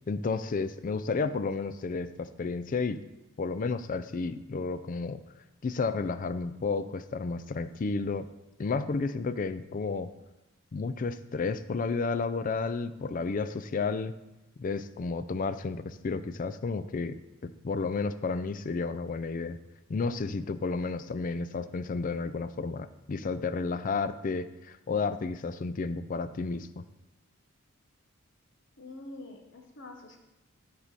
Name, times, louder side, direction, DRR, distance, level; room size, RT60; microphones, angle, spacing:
voice 1, 0.1-3.0 3.4-5.2 5.6-8.3 8.6-10.1 10.7-14.1 14.6-19.6 19.9-26.8, left 4 dB, 40° left, 12 dB, 0.4 m, -32 dB
voice 2, 28.8-30.2, left 2 dB, 60° left, 3 dB, 1.1 m, -45 dB
10.0 x 4.8 x 4.1 m, 0.96 s
head